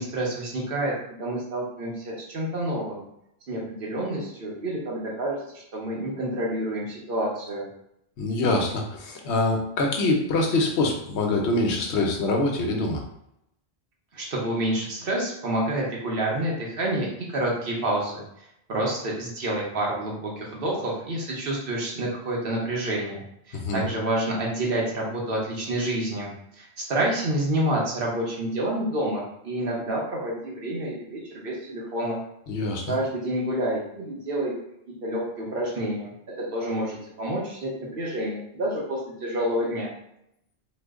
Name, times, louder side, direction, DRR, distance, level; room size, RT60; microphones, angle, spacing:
voice 1, 0.0-3.1 3.5-7.7 14.1-18.2 18.7-32.2 32.9-34.6 35.0-39.9, right 1 dB, 60° right, -3 dB, 1.1 m, -28 dB
voice 2, 8.2-13.0 23.5-23.8 32.5-32.9, left 2 dB, 80° left, 2 dB, 0.9 m, -24 dB
3.0 x 2.0 x 3.5 m, 0.78 s
omnidirectional pair, 1.1 m